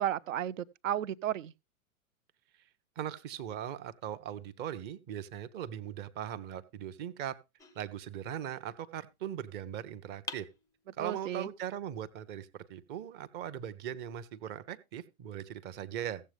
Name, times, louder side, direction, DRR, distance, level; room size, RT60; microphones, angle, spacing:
voice 1, 0.0-1.5 11.0-11.5, right 11 dB, 65° right, 0.7 m, -33 dB
voice 2, 3.0-7.4 7.7-10.5 11.0-16.2, right 10 dB, 25° right, 0.8 m, -39 dB
sound 1, 7.6-8.7 10.3-11.3, left 4 dB, 10° left, 0.6 m, -47 dB
15.5 x 7.4 x 3.4 m
figure-of-eight pair, 110°, 42 cm